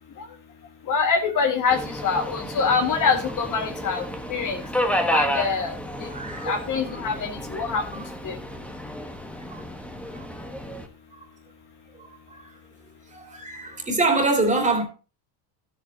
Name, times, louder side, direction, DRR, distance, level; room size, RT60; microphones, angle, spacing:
voice 1, 0.9-4.0 4.3-4.6 5.1-5.7 6.0-6.1 6.4-8.3, left 5 dB, 45° left, 1.9 m, -25 dB
Subway metro underground, 1.7-10.9, equal, 5° left, 1.2 m, -31 dB
voice 2, 6.0-6.6 9.5-9.6 10.1-10.3 12.0-12.4 13.1-14.8, right 3 dB, 15° right, 2.7 m, -25 dB
13.0 x 8.5 x 2.8 m
cardioid pair, 135°, 44 cm